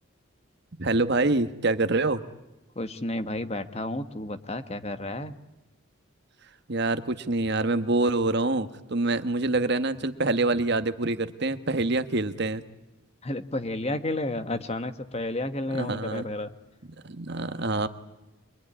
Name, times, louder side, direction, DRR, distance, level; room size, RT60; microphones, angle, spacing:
voice 1, 0.8-2.2 6.7-12.6 15.7-16.3 17.0-17.9, right 2 dB, 50° right, 11 dB, 1.2 m, -26 dB
voice 2, 2.7-5.4 13.2-16.5, left 1 dB, 30° left, 9 dB, 1.2 m, -31 dB
25.0 x 21.5 x 9.8 m, 1.0 s
head